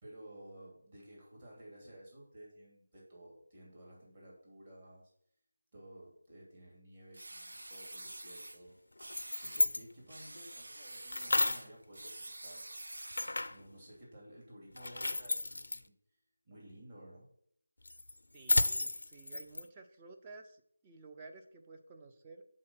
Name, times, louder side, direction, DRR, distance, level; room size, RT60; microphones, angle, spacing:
voice 1, 0.0-5.0 5.7-8.8 9.0-12.7 13.5-15.9 16.4-17.3, right 1 dB, 30° right, -5 dB, 2.5 m, -54 dB
sound 1, 7.1-8.6 9.0-9.7 10.1-13.4, right 1 dB, 80° right, 0.6 m, -47 dB
sound 2, 9.0-9.8 11.1-11.7 13.2-13.7 14.8-15.8 17.8-19.6, left 2 dB, 75° left, 0.5 m, -32 dB
voice 2, 18.3-22.4, right 3 dB, 15° right, 3 dB, 0.6 m, -53 dB
7.5 x 3.9 x 6.0 m, 0.66 s
figure-of-eight pair, 170°, 0 cm